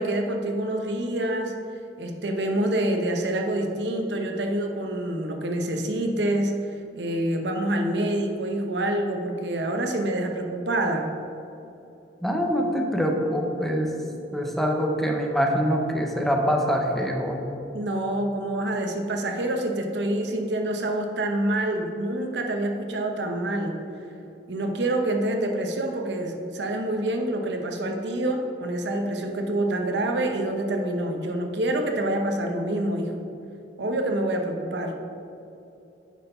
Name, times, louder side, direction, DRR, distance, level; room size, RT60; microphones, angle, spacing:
voice 1, 0.0-1.6 2.0-6.6 6.9-11.1 17.7-23.8 24.5-33.1 33.8-35.0, right 1 dB, 70° right, 3 dB, 0.8 m, -27 dB
voice 2, 12.2-13.9 14.3-17.4, equal, ahead, 1 dB, 0.8 m, -24 dB
9.3 x 4.5 x 5.5 m, 2.8 s
head